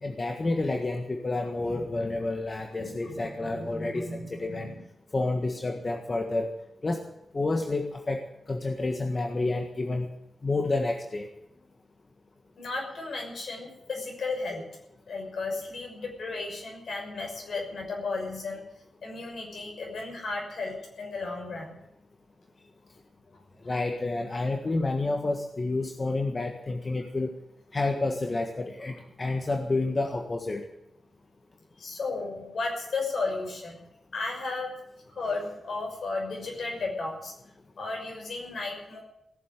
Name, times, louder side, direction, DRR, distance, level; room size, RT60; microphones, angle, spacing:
voice 1, 0.0-4.7 5.1-6.5 6.8-7.0 7.3-8.2 8.5-10.1 10.4-11.3 23.6-27.4 27.7-30.6, left 2 dB, 40° left, 3 dB, 1.6 m, -29 dB
voice 2, 2.8-4.8 12.6-14.7 15.1-18.6 19.0-21.8 23.3-23.4 31.8-33.8 34.1-34.7 35.1-37.3 37.8-39.0, left 3 dB, 70° left, 1 dB, 6.1 m, -34 dB
18.0 x 7.6 x 9.9 m, 0.84 s
cardioid pair, 50°, 0 cm